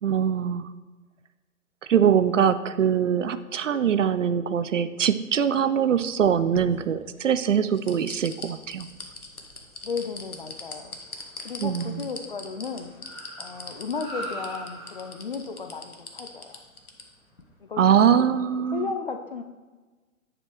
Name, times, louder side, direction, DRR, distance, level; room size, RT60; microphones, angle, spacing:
voice 1, 0.0-0.7 1.9-8.9 11.6-12.1 17.8-18.9, right 8 dB, 60° right, 12 dB, 0.5 m, -23 dB
sound 1, 6.0-7.3 7.8-17.0 17.4-17.5, left 3 dB, 80° left, 1.1 m, -40 dB
Car, 8.2-17.7, right 1 dB, 10° left, 0.8 m, -45 dB
voice 2, 9.8-12.9 13.4-16.6 17.6-18.3 18.7-19.4, left 5 dB, 40° left, 6 dB, 0.4 m, -34 dB
9.6 x 5.1 x 3.0 m, 1.3 s
figure-of-eight pair, 125°, 43 cm